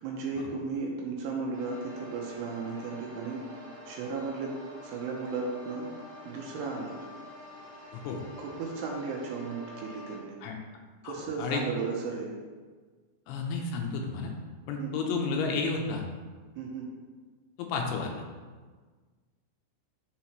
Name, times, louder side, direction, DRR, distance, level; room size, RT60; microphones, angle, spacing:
voice 1, 0.0-3.4 3.9-4.5 4.8-5.9 6.3-6.9 8.4-10.4 11.0-12.4 14.8-14.9 16.6-16.9, right 4 dB, 80° right, -1 dB, 2.6 m, -35 dB
sound 1, 1.5-10.2, left 1 dB, 40° left, 2.2 m, -47 dB
voice 2, 11.0-11.6 13.3-14.3 14.7-16.0 17.6-18.1, left 4 dB, 85° left, 2 dB, 3.1 m, -32 dB
11.0 x 4.3 x 3.0 m, 1.4 s
omnidirectional pair, 5.3 m